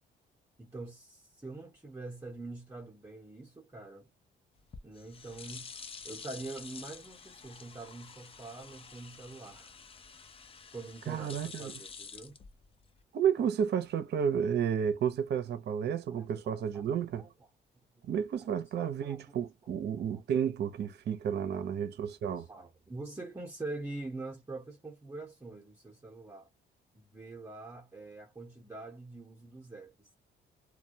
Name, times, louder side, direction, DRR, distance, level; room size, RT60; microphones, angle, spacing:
voice 1, 0.6-4.1 4.8-5.7 6.0-9.8 10.7-12.4 16.1-16.3 16.7-16.9 17.2-17.3 17.7-17.8 18.4-18.5 18.8-19.2 21.5-21.6 22.4-26.5 26.9-30.1, right 2 dB, 15° right, 0.8 m, -44 dB
sound 1, 4.6-13.0, left 5 dB, 30° left, 0.4 m, -49 dB
voice 2, 11.1-11.8 13.1-17.3 18.0-22.5, right 8 dB, 60° right, 0.6 m, -31 dB
2.2 x 2.1 x 2.7 m
cardioid pair, 90°, 20 cm